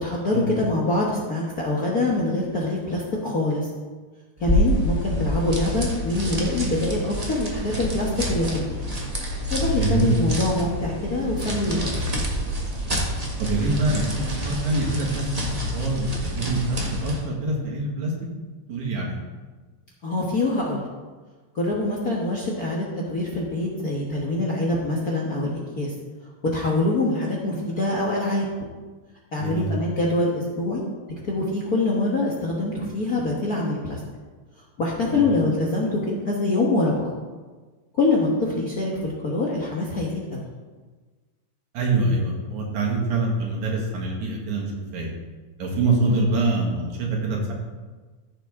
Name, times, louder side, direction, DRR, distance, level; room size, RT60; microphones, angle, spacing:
voice 1, 0.0-3.7 4.4-8.8 9.5-12.2 20.0-20.8 21.5-25.9 26.5-28.5 29.3-30.8 31.2-34.0 34.8-37.1 37.9-40.4 46.0-46.2, left 2 dB, 45° left, -3 dB, 1.2 m, -24 dB
sound 1, 4.4-17.3, equal, 20° right, 0.9 m, -28 dB
voice 2, 9.8-10.1 13.4-18.1 18.7-19.1 29.4-29.7 35.1-35.2 41.7-45.1 45.6-47.5, right 2 dB, 80° right, -2 dB, 3.3 m, -25 dB
14.5 x 7.1 x 3.6 m, 1.4 s
omnidirectional pair, 3.3 m